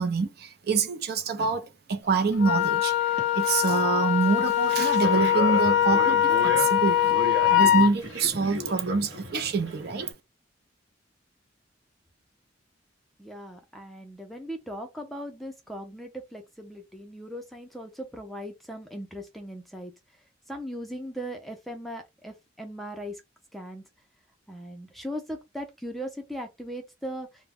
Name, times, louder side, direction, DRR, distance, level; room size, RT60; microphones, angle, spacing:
voice 1, 0.0-7.2 7.5-10.1, right 4 dB, 55° right, 0.5 m, -26 dB
Wind instrument woodwind instrument, 2.4-7.9, left 11 dB, 70° left, 0.4 m, -22 dB
sound 1, 2.6-2.8 3.1-10.1, left 1 dB, 75° right, 0.9 m, -35 dB
voice 2, 13.2-19.9 20.5-23.2 23.5-23.8 24.5-27.3, equal, ahead, 0.4 m, -38 dB
2.2 x 2.0 x 3.3 m
head